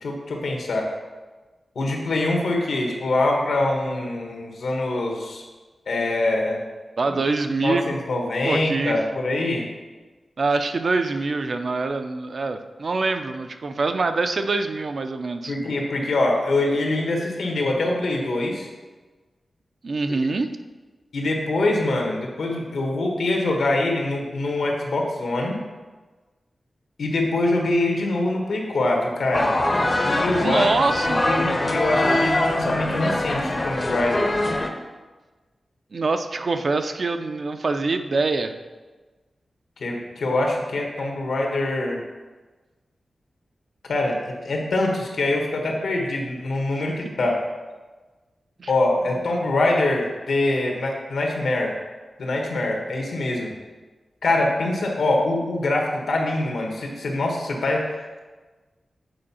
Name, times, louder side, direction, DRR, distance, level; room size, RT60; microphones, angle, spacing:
voice 1, 0.0-0.9 1.7-5.4 5.9-6.6 7.1-7.2 7.6-9.7 15.5-18.7 21.1-25.6 27.0-29.5 30.0-30.7 31.2-34.2 39.8-42.0 43.9-47.4 48.7-51.7 52.2-53.5 54.2-58.2, left 2 dB, 85° left, 0 dB, 1.3 m, -24 dB
voice 2, 7.0-7.9 8.4-9.0 10.4-15.5 19.8-20.5 30.4-31.2 35.9-38.5 48.6-48.7, right 3 dB, 50° right, 8 dB, 0.4 m, -24 dB
sound 1, 29.3-34.7, left 1 dB, 30° left, 0.6 m, -23 dB
7.7 x 4.6 x 4.3 m, 1.3 s
wide cardioid pair, 150°, 0 cm